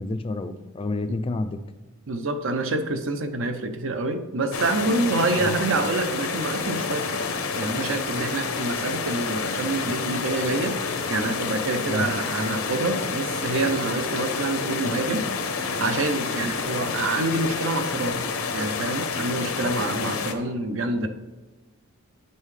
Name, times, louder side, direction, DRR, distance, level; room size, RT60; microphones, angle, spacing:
voice 1, 0.0-1.6 5.3-5.5 11.9-12.1, left 2 dB, 25° left, 9 dB, 0.3 m, -29 dB
voice 2, 2.1-7.3 7.6-15.2 15.6-18.2 18.5-21.1, right 2 dB, 65° right, 8 dB, 0.6 m, -27 dB
sound 1, 4.5-20.3, left 4 dB, 75° left, 0.7 m, -29 dB
9.2 x 5.4 x 3.2 m, 1.2 s
head